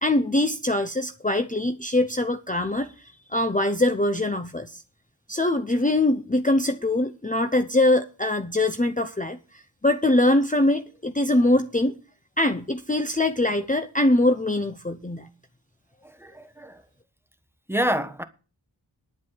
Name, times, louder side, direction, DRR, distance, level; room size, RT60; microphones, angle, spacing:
voice 1, 0.0-4.8 5.3-11.9 12.4-15.3, left 1 dB, 20° left, 0.8 m, -23 dB
voice 2, 16.0-16.8 17.7-18.2, equal, 5° right, 1.3 m, -27 dB
10.5 x 7.4 x 7.4 m
wide cardioid pair, 60°, 45 cm